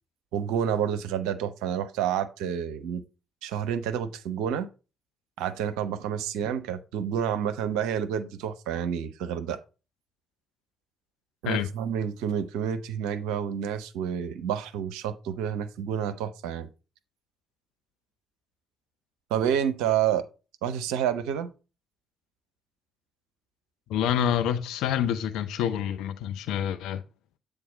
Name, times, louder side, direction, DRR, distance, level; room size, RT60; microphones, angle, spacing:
voice 1, 0.3-3.0 3.4-4.7 5.4-9.6 11.4-16.7 19.3-20.3 20.6-21.5, right 9 dB, 65° right, 0.6 m, -29 dB
voice 2, 23.9-27.0, left 9 dB, 60° left, 0.6 m, -27 dB
8.5 x 3.5 x 4.0 m
figure-of-eight pair, 40°, 0 cm